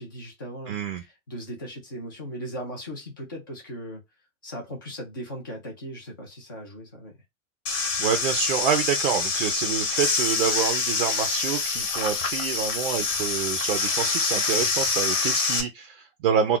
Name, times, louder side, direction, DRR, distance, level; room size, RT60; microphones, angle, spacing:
voice 1, 0.0-4.0 4.4-7.1, equal, 15° left, 0.3 m, -38 dB
voice 2, 0.7-1.0 8.0-16.6, right 7 dB, 45° right, 0.4 m, -27 dB
sound 1, 7.7-15.6, left 4 dB, 60° left, 1.2 m, -26 dB
2.3 x 2.2 x 3.6 m
hypercardioid pair, 150°, 43 cm